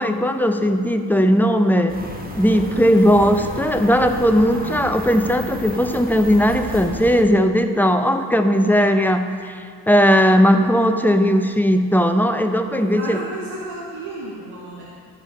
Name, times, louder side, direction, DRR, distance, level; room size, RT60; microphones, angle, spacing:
voice 1, 0.0-1.9 2.4-13.2, equal, 5° left, 6 dB, 0.6 m, -17 dB
sound 1, 1.9-7.3, right 1 dB, 20° right, 1.3 m, -33 dB
voice 2, 12.7-14.8, right 2 dB, 85° right, -5 dB, 1.2 m, -32 dB
13.5 x 4.9 x 3.8 m, 2.2 s
cardioid pair, 60°, 39 cm